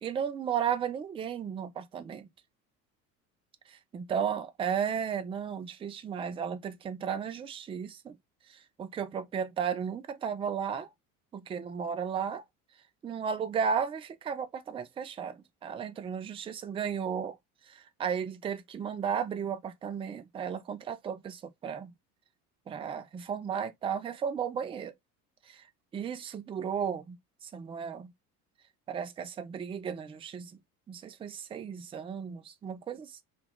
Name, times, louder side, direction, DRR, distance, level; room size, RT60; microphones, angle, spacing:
voice 1, 0.0-2.3 3.7-8.2 8.5-10.9 11.3-12.4 13.0-17.4 17.7-21.9 22.7-24.9 25.5-25.6 25.9-27.2 27.4-28.1 28.9-30.5 30.9-33.2, right 7 dB, 15° right, 0.4 m, -34 dB
2.8 x 2.6 x 3.7 m
hypercardioid pair, 70°, 46 cm